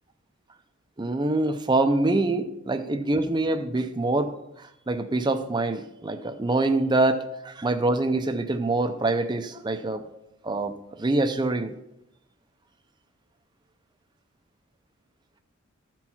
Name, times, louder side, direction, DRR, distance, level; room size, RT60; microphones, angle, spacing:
voice 1, 1.0-4.3 4.6-10.0 10.4-11.7, right 2 dB, 20° right, 7 dB, 0.5 m, -25 dB
13.5 x 4.5 x 5.6 m, 0.85 s
head